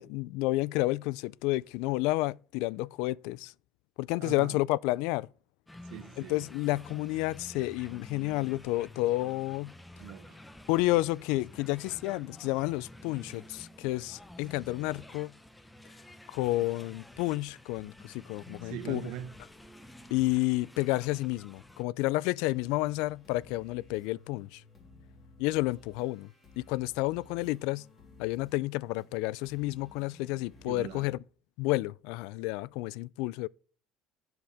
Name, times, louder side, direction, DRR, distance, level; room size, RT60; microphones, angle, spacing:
voice 1, 0.0-3.5 4.0-5.3 6.2-9.7 10.7-15.3 16.3-19.0 20.1-24.6 25.4-26.3 26.6-27.9 28.2-31.2 31.6-33.5, left 19 dB, 80° left, 0.3 m, -30 dB
voice 2, 4.2-4.6 5.8-6.4 10.0-10.4 18.6-19.3 30.6-31.1, right 11 dB, 70° right, 1.1 m, -41 dB
sound 1, 5.7-21.8, left 1 dB, 5° left, 0.8 m, -50 dB
sound 2, 22.4-31.2, left 3 dB, 25° left, 3.4 m, -56 dB
11.5 x 7.9 x 3.5 m
cardioid pair, 155°, 0 cm